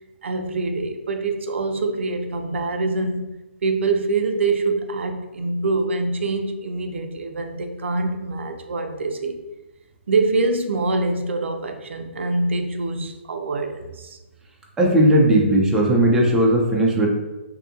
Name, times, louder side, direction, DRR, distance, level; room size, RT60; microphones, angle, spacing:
voice 1, 0.2-3.3 3.6-9.4 10.1-14.2, right 3 dB, 70° right, 6 dB, 0.4 m, -24 dB
voice 2, 14.8-17.1, right 1 dB, 5° right, -3 dB, 0.4 m, -17 dB
2.7 x 2.5 x 2.4 m, 1.0 s
hypercardioid pair, 140°, 7 cm